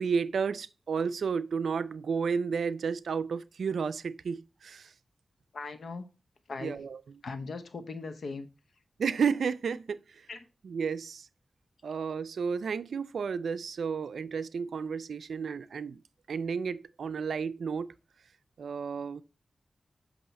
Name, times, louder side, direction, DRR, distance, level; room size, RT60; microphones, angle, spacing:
voice 1, 0.0-4.9 6.6-7.2 9.0-10.3 10.6-11.3 11.8-16.0 16.3-17.9 18.6-19.2, right 6 dB, 90° right, 0.4 m, -32 dB
voice 2, 5.5-6.1 6.5-6.9 7.2-8.5 10.3-10.4, left 4 dB, 80° left, 0.9 m, -39 dB
8.0 x 2.9 x 4.1 m
cardioid pair, 50°, 0 cm